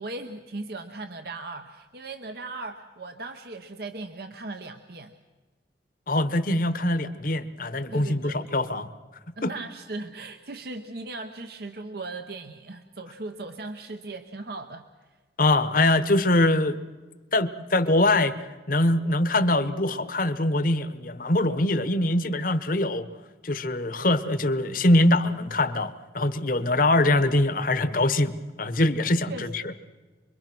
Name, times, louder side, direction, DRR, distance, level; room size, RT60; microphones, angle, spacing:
voice 1, 0.0-5.1 7.9-8.4 9.4-14.8 29.3-29.7, right 2 dB, 60° right, 7 dB, 1.0 m, -38 dB
voice 2, 6.1-8.9 9.4-9.5 15.4-16.8 17.3-18.4 18.7-23.1 23.4-29.6, left 1 dB, 50° left, 12 dB, 1.1 m, -23 dB
26.0 x 22.5 x 6.1 m, 1.3 s
head